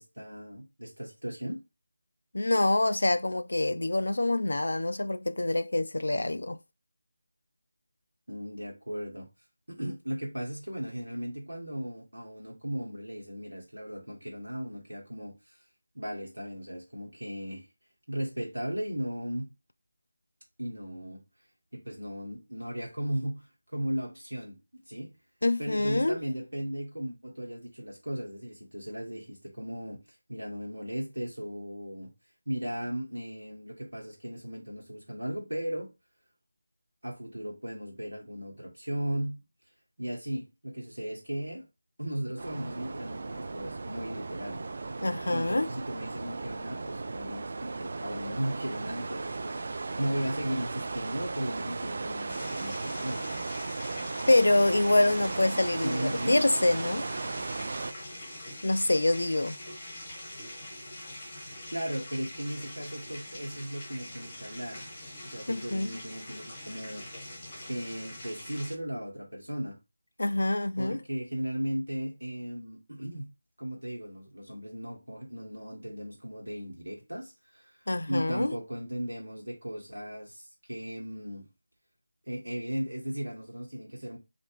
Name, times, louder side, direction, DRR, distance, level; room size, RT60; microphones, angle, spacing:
voice 1, 0.0-1.6 8.3-9.3 9.7-15.6 15.9-17.7 18.1-19.5 20.6-21.2 21.7-24.6 24.9-25.1 25.6-30.0 30.3-32.1 32.5-35.9 37.0-39.4 40.0-41.7 42.0-44.6 45.3-53.3 55.8-56.3 61.7-64.8 65.2-67.1 67.6-69.8 70.8-73.3 73.6-77.8 78.1-81.4 82.3-84.2, equal, 85° right, 1.1 m, -36 dB
voice 2, 2.3-6.6 25.4-26.2 45.0-45.7 54.3-57.1 58.6-59.6 65.5-66.0 70.2-71.0 77.9-78.5, left 2 dB, 70° left, 0.3 m, -26 dB
sound 1, 42.4-57.9, right 3 dB, 50° right, 0.3 m, -36 dB
sound 2, 52.3-68.8, left 1 dB, 25° left, 1.4 m, -44 dB
3.3 x 2.5 x 3.0 m
figure-of-eight pair, 165°, 0 cm